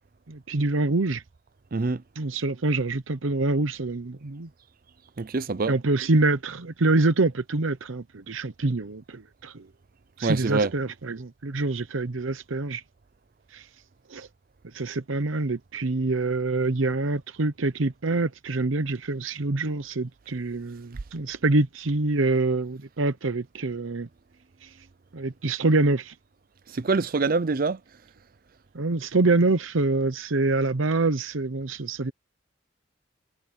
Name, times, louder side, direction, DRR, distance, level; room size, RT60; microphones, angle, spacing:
voice 1, 0.3-1.2 2.2-4.5 5.7-9.7 10.2-12.8 13.5-13.7 14.1-14.3 14.7-24.1 24.6-24.7 25.1-26.1 28.7-32.1, right 2 dB, 90° right, 0.9 m, -25 dB
voice 2, 1.7-2.0 5.2-5.7 10.2-10.7 26.7-27.8, right 3 dB, 45° right, 0.5 m, -25 dB
head